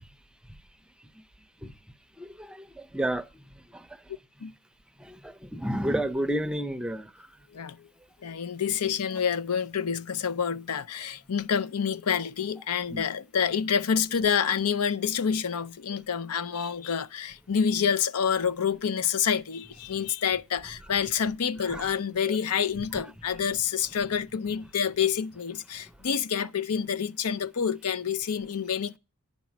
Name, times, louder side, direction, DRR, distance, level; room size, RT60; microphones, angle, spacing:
voice 1, 2.2-3.3 3.7-3.9 5.0-7.1 12.9-13.0 21.6-22.0 22.3-22.4 22.8-23.0, right 1 dB, 5° right, 0.5 m, -31 dB
voice 2, 8.2-29.0, left 7 dB, 80° left, 0.6 m, -28 dB
10.5 x 5.3 x 5.9 m
head